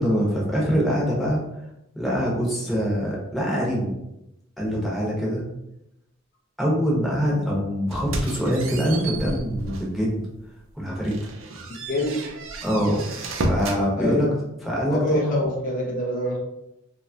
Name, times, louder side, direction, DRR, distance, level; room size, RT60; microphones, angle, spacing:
voice 1, 0.0-1.4 1.9-3.9 4.6-5.4 6.6-10.2 10.8-11.3 12.6-13.1 13.5-14.3 14.6-15.4, equal, ahead, -6 dB, 0.8 m, -24 dB
sound 1, 7.9-10.0 10.4-10.6 11.0-13.8, right 2 dB, 75° right, 0.5 m, -31 dB
voice 2, 11.9-12.3 14.0-14.3 14.9-16.4, left 1 dB, 45° left, -2 dB, 0.5 m, -25 dB
2.9 x 2.3 x 2.7 m, 0.85 s
head